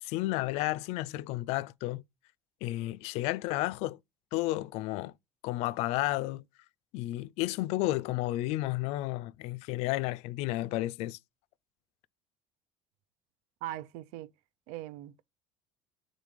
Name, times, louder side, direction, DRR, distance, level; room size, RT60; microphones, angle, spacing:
voice 1, 0.0-2.0 2.6-4.0 4.3-5.1 5.4-6.4 6.9-11.2, left 17 dB, 70° left, 0.4 m, -32 dB
voice 2, 13.6-14.3 14.7-15.2, right 14 dB, 80° right, 0.5 m, -40 dB
6.5 x 3.7 x 5.0 m
cardioid pair, 140°, 11 cm